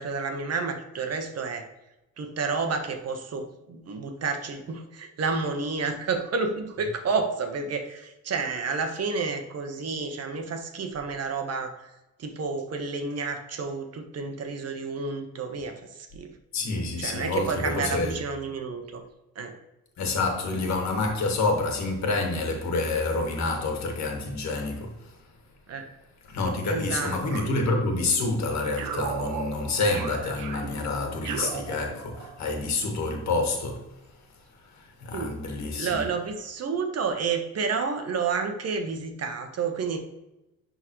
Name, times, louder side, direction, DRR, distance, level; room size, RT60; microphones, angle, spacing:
voice 1, 0.0-1.6 2.2-11.9 12.2-16.3 17.0-19.0 19.3-19.5 25.7-25.9 26.7-27.2 35.1-35.3 35.7-40.0, right 4 dB, 55° right, 1.2 m, -30 dB
voice 2, 16.5-18.2 20.0-25.2 26.3-36.0, left 3 dB, 65° left, 1.7 m, -28 dB
sound 1, 27.3-28.3 28.8-32.4, right 6 dB, 85° right, 0.9 m, -36 dB
10.5 x 3.9 x 3.1 m
cardioid pair, 90°, 30 cm